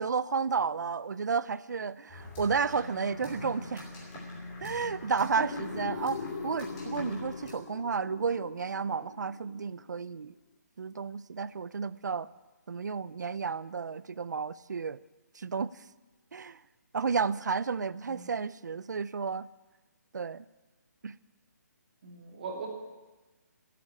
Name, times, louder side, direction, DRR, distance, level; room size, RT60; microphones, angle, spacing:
voice 1, 0.0-3.9 4.6-10.3 10.8-12.3 12.7-15.0 15.3-15.7 16.3-16.6 16.9-19.5 20.1-20.5 21.0-21.1, right 5 dB, 75° right, 18 dB, 0.6 m, -32 dB
sound 1, 2.1-7.5, left 2 dB, 15° left, 3.0 m, -43 dB
sound 2, 5.5-10.2, left 4 dB, 45° left, 2.0 m, -42 dB
voice 2, 22.0-22.7, right 4 dB, 30° right, 1 dB, 2.5 m, -39 dB
16.0 x 8.7 x 8.7 m, 1.2 s
hypercardioid pair, 175°, 10 cm